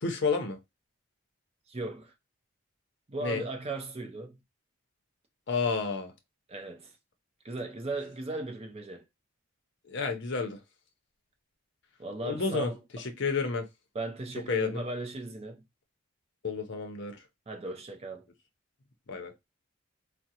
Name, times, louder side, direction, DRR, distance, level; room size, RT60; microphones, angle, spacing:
voice 1, 0.0-0.6 3.2-3.4 5.5-6.1 9.9-10.6 12.2-13.7 14.5-14.8 16.4-17.2 19.1-19.3, left 4 dB, 55° left, 0.6 m, -30 dB
voice 2, 1.7-2.1 3.1-4.4 6.5-7.0 7.4-9.1 12.0-12.8 13.9-15.6 17.5-18.3, right 2 dB, 30° right, 0.5 m, -37 dB
3.6 x 2.0 x 2.7 m
head